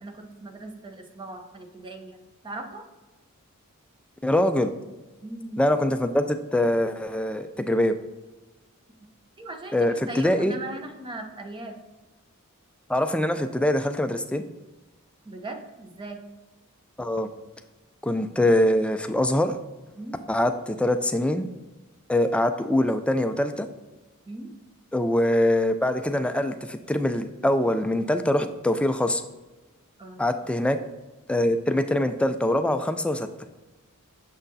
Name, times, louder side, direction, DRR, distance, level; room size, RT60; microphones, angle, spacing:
voice 1, 0.0-2.2 2.4-2.8 5.2-5.6 9.4-11.7 15.3-16.2 19.9-20.2 24.3-24.5 30.0-30.3, right 2 dB, 20° right, 4 dB, 0.7 m, -39 dB
voice 2, 4.2-4.7 5.6-8.0 9.7-10.6 12.9-14.4 17.0-17.3 18.0-19.5 20.3-21.5 22.1-23.7 24.9-29.2 30.2-30.8 31.3-33.3, left 1 dB, 5° left, 8 dB, 0.3 m, -23 dB
6.5 x 6.0 x 2.7 m, 1.2 s
head